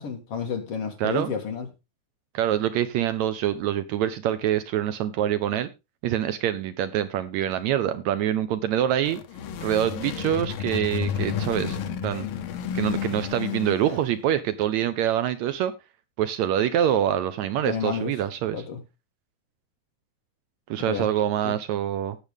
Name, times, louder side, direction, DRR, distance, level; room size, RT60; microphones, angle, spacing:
voice 1, 0.0-1.7 17.7-18.2 18.5-18.8 20.9-21.1 21.4-21.6, left 6 dB, 55° left, 4 dB, 2.3 m, -30 dB
voice 2, 2.3-5.7 6.0-9.2 9.6-11.8 12.0-12.3 12.7-15.7 16.2-18.6 20.7-22.2, right 11 dB, 75° right, 12 dB, 1.8 m, -25 dB
sound 1, 8.9-14.2, left 8 dB, 75° left, 1.2 m, -31 dB
17.5 x 6.7 x 3.5 m, 0.26 s
omnidirectional pair, 3.6 m